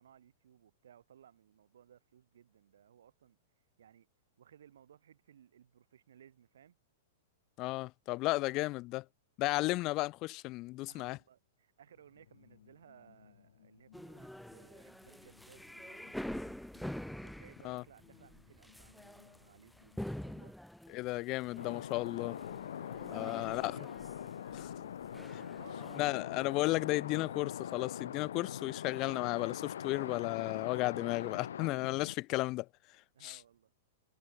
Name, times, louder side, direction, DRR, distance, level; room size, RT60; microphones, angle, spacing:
voice 1, 0.0-3.4 3.8-4.1 4.4-6.8 10.9-16.4 17.2-20.5 23.0-24.0 25.3-25.9 33.1-33.7, right 9 dB, 85° right, 7.4 m, -61 dB
voice 2, 7.6-9.0 9.4-11.2 17.6-17.8 20.9-22.4 23.1-23.7 24.5-24.7 26.0-32.7 33.2-33.4, left 20 dB, 30° left, 0.3 m, -34 dB
sound 1, 11.9-20.5, left 11 dB, 75° left, 3.1 m, -65 dB
sound 2, 13.9-26.0, equal, ahead, 1.8 m, -46 dB
sound 3, 21.6-32.1, left 9 dB, 90° left, 1.4 m, -42 dB
supercardioid pair, 165°, 0 cm